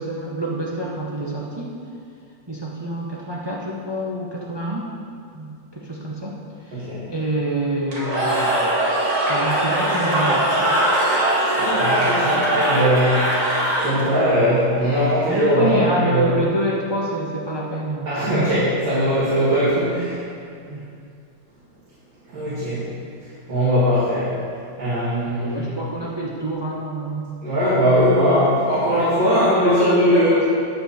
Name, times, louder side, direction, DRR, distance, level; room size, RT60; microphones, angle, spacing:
voice 1, 0.0-1.8 2.5-4.9 5.3-6.4 6.6-10.7 15.3-18.5 19.2-19.4 20.7-20.8 25.4-27.3 29.3-30.5, right 1 dB, 20° right, -4 dB, 0.6 m, -26 dB
voice 2, 6.7-7.0 11.6-16.2 18.1-20.2 22.3-22.9 23.5-24.4 24.8-25.7 27.4-30.3, equal, 85° right, -11 dB, 3.0 m, -20 dB
Cheering / Crowd, 7.9-14.2, right 1 dB, 50° right, 2.6 m, -21 dB
9.9 x 8.0 x 4.3 m, 2.4 s
omnidirectional pair, 2.0 m